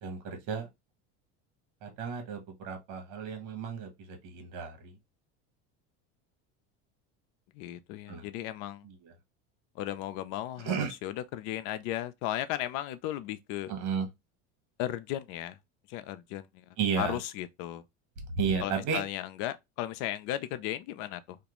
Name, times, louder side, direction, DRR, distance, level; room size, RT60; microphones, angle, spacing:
voice 1, 0.0-0.7 1.8-4.9 8.1-8.3 8.8-9.1 10.6-10.9 13.7-14.1 16.8-17.2 18.3-19.0, right 6 dB, 60° right, 1.0 m, -33 dB
voice 2, 7.5-8.8 9.8-13.7 14.8-15.6 15.9-16.6 17.0-17.8 18.6-21.4, left 13 dB, 65° left, 0.5 m, -35 dB
2.4 x 2.2 x 2.9 m
supercardioid pair, 110°, 34 cm